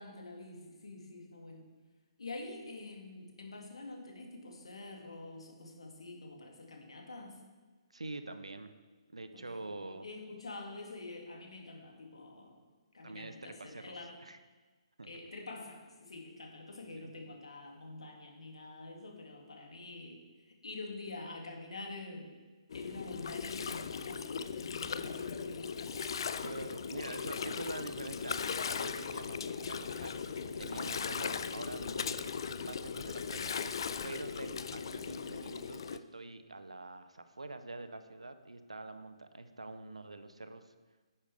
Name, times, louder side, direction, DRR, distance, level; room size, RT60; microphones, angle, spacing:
voice 1, 0.0-1.7 2.2-7.4 9.3-12.6 12.9-14.2 15.0-22.3 22.7-25.7, left 2 dB, 65° left, 1 dB, 2.2 m, -47 dB
voice 2, 7.9-8.7 9.1-10.1 13.0-14.4 15.0-15.2 16.9-17.1 26.4-33.8 34.0-40.7, right 2 dB, 70° right, 10 dB, 0.8 m, -45 dB
Gurgling, 22.7-36.0, left 6 dB, 45° left, 0.4 m, -38 dB
10.0 x 9.9 x 3.4 m, 1.3 s
figure-of-eight pair, 135°, 3 cm